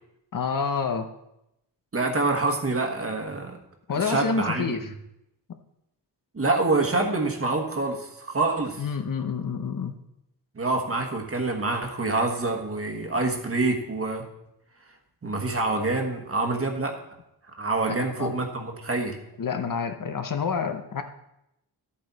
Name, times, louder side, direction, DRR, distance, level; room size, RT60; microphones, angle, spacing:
voice 1, 0.3-1.1 3.9-4.9 8.8-9.9 17.9-18.3 19.4-21.0, left 5 dB, 50° left, 7 dB, 0.8 m, -28 dB
voice 2, 1.9-3.6 3.9-4.8 6.3-8.8 10.6-14.2 15.2-17.0 17.6-19.2, right 3 dB, 30° right, 3 dB, 1.3 m, -26 dB
12.5 x 8.4 x 4.1 m, 0.84 s
wide cardioid pair, 165°, 42 cm